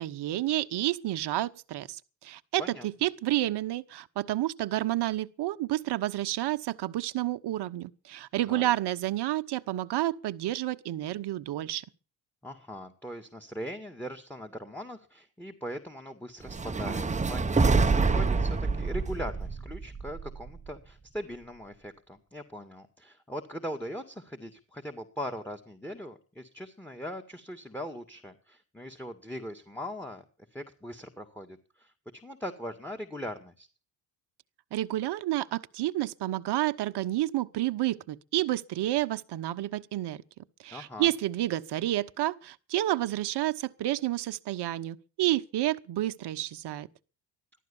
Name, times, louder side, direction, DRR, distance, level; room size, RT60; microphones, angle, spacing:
voice 1, 0.0-11.8 34.7-40.2 40.6-46.9, right 14 dB, 55° right, 1.0 m, -30 dB
voice 2, 12.4-30.2 30.5-33.7 40.7-41.1, equal, 5° left, 1.9 m, -40 dB
sound 1, 16.5-20.7, right 4 dB, 15° right, 0.9 m, -26 dB
14.5 x 12.0 x 7.1 m
hypercardioid pair, 70°, 50 cm